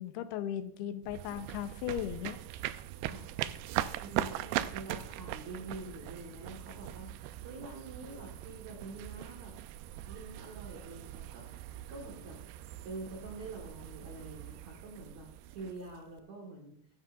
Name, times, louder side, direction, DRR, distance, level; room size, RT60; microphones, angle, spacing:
voice 1, 0.0-2.4, left 10 dB, 80° left, 9 dB, 2.7 m, -37 dB
sound 1, 1.0-16.2, right 13 dB, 80° right, 2.4 m, -40 dB
voice 2, 3.9-9.5 10.0-11.5 11.9-12.4 12.8-16.8, right 2 dB, 55° right, -1 dB, 2.3 m, -46 dB
15.0 x 11.0 x 2.5 m, 0.66 s
omnidirectional pair, 4.7 m